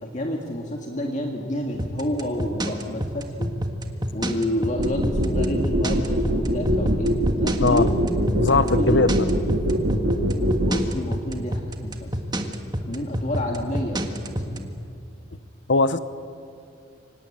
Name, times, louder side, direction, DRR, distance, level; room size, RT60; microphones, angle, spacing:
voice 1, 0.0-3.5 4.1-8.0 8.4-9.2 10.5-12.1 12.8-14.7, left 1 dB, 40° left, 1 dB, 2.0 m, -29 dB
sound 1, 1.8-14.6, right 1 dB, 20° right, 1.6 m, -27 dB
sound 2, 4.8-10.7, equal, 85° right, 2.9 m, -22 dB
voice 2, 8.4-9.3 15.7-16.0, left 3 dB, 70° left, 13 dB, 0.9 m, -20 dB
25.0 x 19.0 x 8.8 m, 2.6 s
head